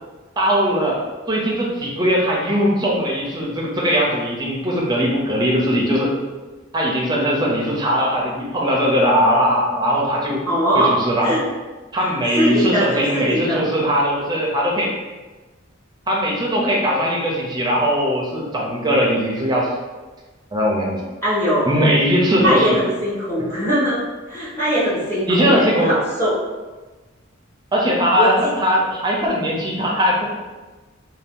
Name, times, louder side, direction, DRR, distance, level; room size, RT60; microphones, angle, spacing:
voice 1, 0.4-1.0 1.3-6.1 6.7-10.4 10.7-11.4 11.9-14.9 16.1-19.7 20.5-21.0 21.6-22.8 23.4-23.5 25.3-26.0 27.7-30.3, equal, 20° right, -2 dB, 0.5 m, -20 dB
voice 2, 10.5-11.4 12.0-12.1 12.4-13.6 21.2-21.8 22.4-26.4 28.2-28.5, equal, 15° left, -10 dB, 1.1 m, -21 dB
2.7 x 2.2 x 3.5 m, 1.2 s
head